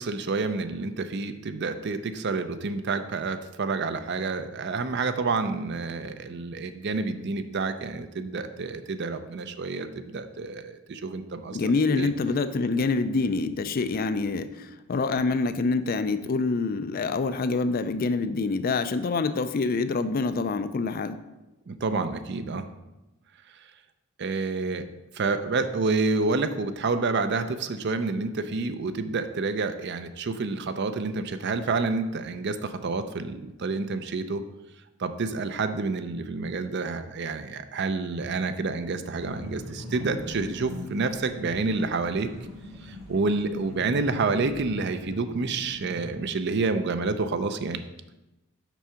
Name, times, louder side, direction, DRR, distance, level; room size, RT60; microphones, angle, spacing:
voice 1, 0.0-11.6 11.9-12.1 21.7-22.6 24.2-24.9 25.1-34.4 35.0-42.3 42.8-47.8, right 3 dB, 55° right, 10 dB, 0.5 m, -29 dB
voice 2, 11.5-21.2, left 3 dB, 45° left, 11 dB, 0.4 m, -26 dB
sound 1, 39.2-46.2, left 1 dB, ahead, 2.7 m, -41 dB
6.1 x 4.8 x 5.6 m, 0.99 s
head